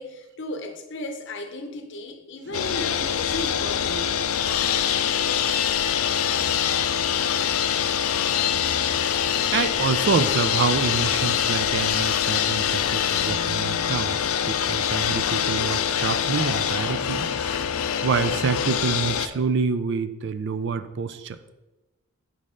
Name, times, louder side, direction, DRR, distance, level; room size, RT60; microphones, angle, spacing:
voice 1, 0.0-4.1, left 1 dB, 60° left, 6 dB, 0.7 m, -35 dB
sound 1, 2.5-19.3, left 9 dB, 85° left, 0.4 m, -24 dB
voice 2, 4.9-6.0 9.5-17.3 18.0-21.4, right 5 dB, 55° right, 11 dB, 0.4 m, -27 dB
5.4 x 4.1 x 5.0 m, 1.1 s
head